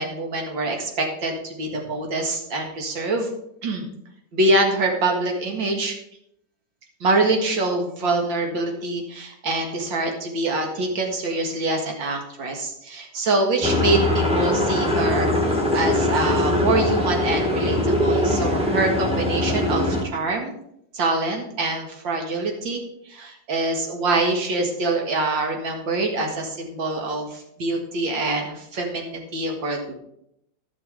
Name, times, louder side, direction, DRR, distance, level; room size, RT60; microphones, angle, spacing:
voice 1, 0.0-3.3 3.6-3.9 4.3-5.9 7.0-20.5 20.9-22.8 23.1-29.9, right 2 dB, 85° right, 2 dB, 2.6 m, -25 dB
sound 1, 13.6-20.0, left 1 dB, 5° right, 1.4 m, -22 dB
14.5 x 6.1 x 5.1 m, 0.76 s
omnidirectional pair, 2.0 m